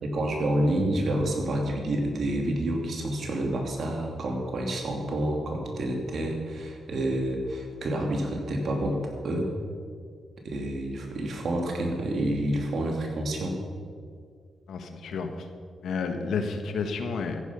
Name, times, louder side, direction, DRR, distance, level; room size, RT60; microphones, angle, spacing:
voice 1, 0.0-9.5 10.4-13.6, right 1 dB, 65° right, 2 dB, 2.7 m, -28 dB
voice 2, 14.7-15.5 15.8-17.4, left 5 dB, 80° left, 6 dB, 1.4 m, -31 dB
14.0 x 10.5 x 5.7 m, 2.1 s
cardioid pair, 70°, 0 cm